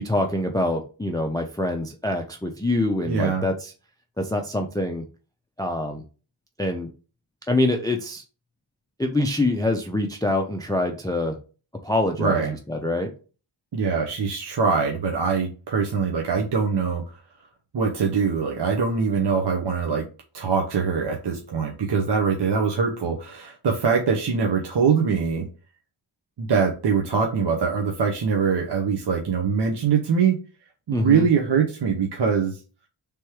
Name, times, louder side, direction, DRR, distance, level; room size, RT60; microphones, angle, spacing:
voice 1, 0.0-3.7 4.2-5.0 5.6-6.0 6.6-6.9 7.5-8.2 9.0-11.4 11.8-13.1 30.9-31.3, left 2 dB, 10° left, 4 dB, 0.4 m, -25 dB
voice 2, 3.1-3.4 12.2-12.5 13.7-17.2 17.7-20.0 20.3-25.5 26.4-30.4 30.9-32.6, right 5 dB, 55° right, 2 dB, 0.7 m, -23 dB
3.4 x 3.0 x 4.7 m, 0.35 s
wide cardioid pair, 110°, 48 cm